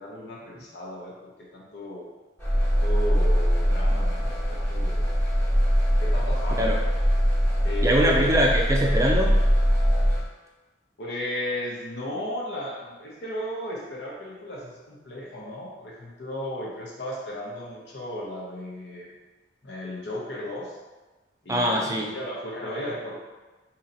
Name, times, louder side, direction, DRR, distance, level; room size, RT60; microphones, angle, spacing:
voice 1, 0.0-2.1 2.8-5.1 5.9-6.7 7.6-8.2 11.0-19.1 19.6-20.8 21.4-23.2, left 1 dB, 70° left, -4 dB, 0.9 m, -35 dB
sound 1, 2.4-10.2, equal, 15° left, 1.0 m, -22 dB
voice 2, 7.8-9.3 21.5-22.1, equal, 15° right, -1 dB, 0.4 m, -22 dB
2.9 x 2.8 x 3.9 m, 1.2 s
head